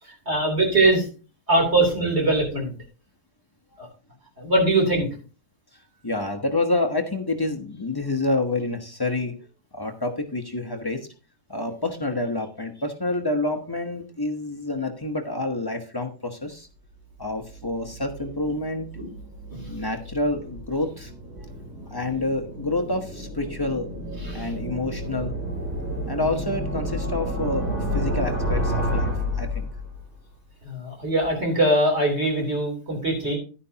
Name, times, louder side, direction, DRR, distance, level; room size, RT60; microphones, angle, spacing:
voice 1, 0.3-1.1 1.5-2.7 3.8-3.9 4.4-5.1 19.0-19.1 19.5-19.7 24.2-24.5 30.6-33.4, right 2 dB, 30° right, 1 dB, 3.6 m, -22 dB
voice 2, 6.0-9.3 9.7-11.0 11.5-16.7 17.2-18.9 19.7-21.1 21.9-23.9 24.3-25.3 26.1-27.6 27.9-29.7, left 2 dB, 25° left, 3 dB, 0.5 m, -28 dB
sound 1, 17.2-30.1, equal, 75° right, 3.8 m, -30 dB
11.0 x 9.8 x 2.9 m, 0.36 s
omnidirectional pair, 2.1 m